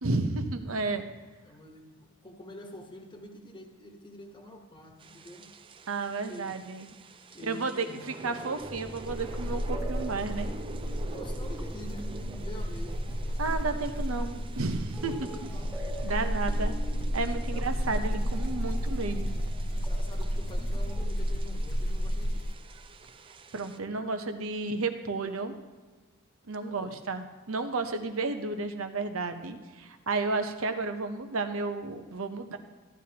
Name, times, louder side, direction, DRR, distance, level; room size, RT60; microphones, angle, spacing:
voice 1, 0.0-1.1 5.9-6.9 7.4-10.5 13.4-15.5 16.0-16.8 17.1-19.4 23.5-25.6 26.5-32.6, right 3 dB, 75° right, 7 dB, 0.9 m, -32 dB
voice 2, 1.4-5.5 6.2-6.6 7.3-8.4 11.1-12.1 12.4-13.0 15.1-15.8 17.5-17.6 19.8-22.5 26.6-27.0, left 1 dB, 25° left, 2 dB, 1.3 m, -47 dB
sound 1, 5.0-23.8, right 3 dB, 25° right, 0.4 m, -48 dB
sound 2, 8.6-21.1, right 1 dB, 10° right, 1.7 m, -43 dB
sound 3, 9.0-22.5, equal, 50° left, 0.7 m, -32 dB
14.0 x 10.5 x 2.9 m, 1.4 s
head